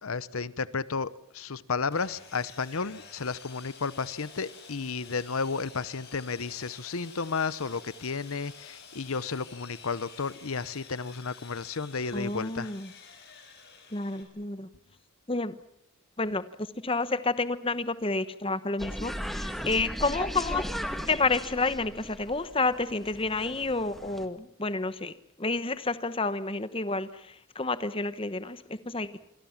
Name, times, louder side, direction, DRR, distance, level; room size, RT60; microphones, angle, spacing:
voice 1, 0.0-12.7, left 4 dB, 80° left, 17 dB, 0.9 m, -33 dB
Sawing, 1.9-14.2, left 6 dB, 50° left, 6.6 m, -50 dB
voice 2, 12.1-12.9 13.9-14.7 15.3-15.5 16.2-16.4 16.8-20.6 21.1-25.1 25.4-29.2, left 3 dB, 25° left, 13 dB, 1.1 m, -30 dB
sound 1, 18.8-24.3, equal, ahead, 1.7 m, -37 dB
27.5 x 23.5 x 7.3 m, 0.80 s
head